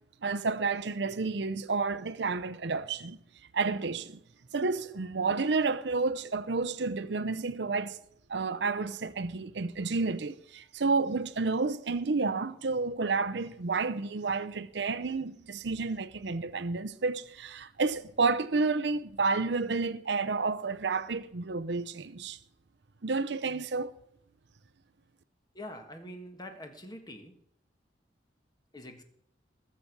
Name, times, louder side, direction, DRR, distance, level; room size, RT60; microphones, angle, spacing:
voice 1, 0.2-3.2 3.5-4.2 4.5-8.0 8.3-22.4 23.0-23.9, right 4 dB, 70° right, 0.7 m, -30 dB
voice 2, 25.5-27.3 28.7-29.0, left 1 dB, 20° left, 1.5 m, -44 dB
20.5 x 6.9 x 6.0 m
head